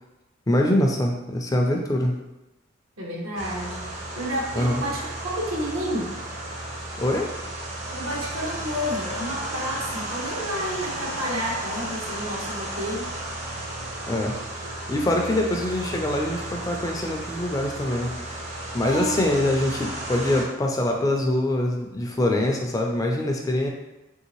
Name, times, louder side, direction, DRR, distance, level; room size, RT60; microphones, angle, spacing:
voice 1, 0.5-2.1 4.5-4.8 7.0-7.3 14.1-14.3 14.9-18.4 18.7-23.7, left 1 dB, 15° left, 1 dB, 0.3 m, -24 dB
voice 2, 3.0-3.9 4.1-6.1 7.9-13.1 18.8-19.2, equal, 80° right, -3 dB, 0.9 m, -30 dB
sound 1, 3.4-20.4, right 1 dB, 35° right, 0.5 m, -34 dB
3.2 x 2.7 x 2.9 m, 0.98 s
head